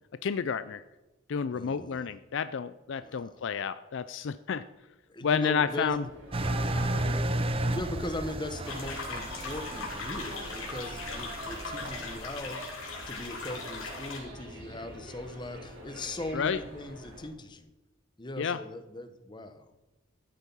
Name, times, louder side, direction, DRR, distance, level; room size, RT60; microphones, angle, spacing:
voice 1, 0.2-0.8 1.3-4.6 5.2-6.0 16.3-16.6 18.4-18.6, left 6 dB, 60° left, 14 dB, 0.4 m, -30 dB
voice 2, 1.5-2.1 3.0-3.5 5.1-6.1 7.7-17.7 18.2-19.8, left 1 dB, 20° left, 9 dB, 0.9 m, -39 dB
sound 1, 5.8-17.3, equal, 65° right, 4.2 m, -46 dB
Engine, 6.3-12.2, right 1 dB, 25° right, 0.7 m, -33 dB
sound 2, 8.6-14.2, left 3 dB, 80° left, 3.4 m, -39 dB
13.5 x 8.2 x 5.5 m, 1.1 s
head